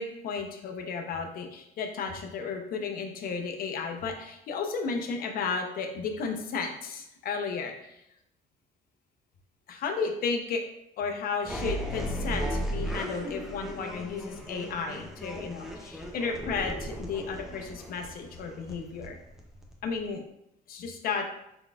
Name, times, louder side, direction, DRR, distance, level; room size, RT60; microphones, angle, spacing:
voice 1, 0.0-7.7 9.7-10.6 11.0-19.2 19.8-20.2 20.7-21.2, left 5 dB, 60° left, 4 dB, 0.6 m, -33 dB
sound 1, 11.4-20.1, equal, 5° right, 0.5 m, -36 dB
3.9 x 3.8 x 2.3 m, 0.80 s
cardioid pair, 110°, 17 cm